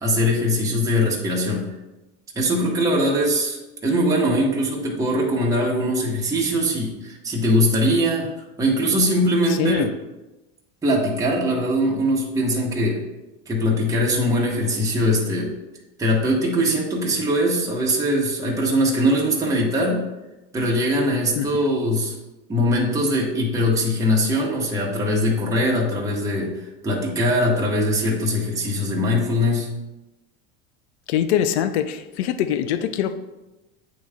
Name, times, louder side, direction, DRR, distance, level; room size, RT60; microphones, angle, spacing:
voice 1, 0.0-1.7 2.3-3.6 3.8-8.3 8.6-9.9 10.8-13.0 13.5-15.5 16.0-20.0 20.5-22.2 22.5-29.7, equal, 10° right, -4 dB, 1.1 m, -21 dB
voice 2, 9.6-9.9 21.4-21.5 31.1-33.1, left 10 dB, 85° left, 10 dB, 0.5 m, -23 dB
8.7 x 3.1 x 3.5 m, 1.0 s
supercardioid pair, 130°, 33 cm